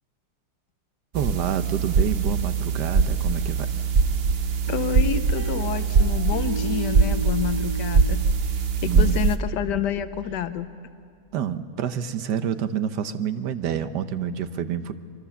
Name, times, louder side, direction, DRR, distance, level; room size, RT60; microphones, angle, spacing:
sound 1, 1.1-9.4, right 5 dB, 50° right, 0.8 m, -22 dB
voice 1, 1.1-3.7 8.9-9.2 11.3-14.9, right 8 dB, 85° right, 11 dB, 1.5 m, -28 dB
voice 2, 4.7-8.2 8.8-10.7, left 10 dB, 85° left, 11 dB, 1.4 m, -29 dB
sound 2, 4.7-8.1, right 1 dB, 15° left, 1.9 m, -34 dB
25.0 x 24.0 x 7.0 m, 2.3 s
omnidirectional pair, 1.8 m